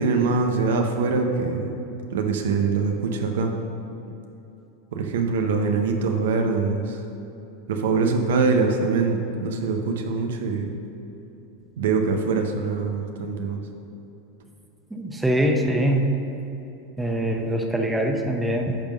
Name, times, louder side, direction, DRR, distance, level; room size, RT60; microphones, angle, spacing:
voice 1, 0.0-1.7 2.1-3.5 4.9-7.0 7.7-10.7 11.8-13.6, right 4 dB, 75° right, 4 dB, 0.7 m, -23 dB
voice 2, 14.9-16.0 17.0-18.8, right 1 dB, 10° right, 3 dB, 0.8 m, -23 dB
10.5 x 3.6 x 5.3 m, 3.0 s
hypercardioid pair, 95°, 0 cm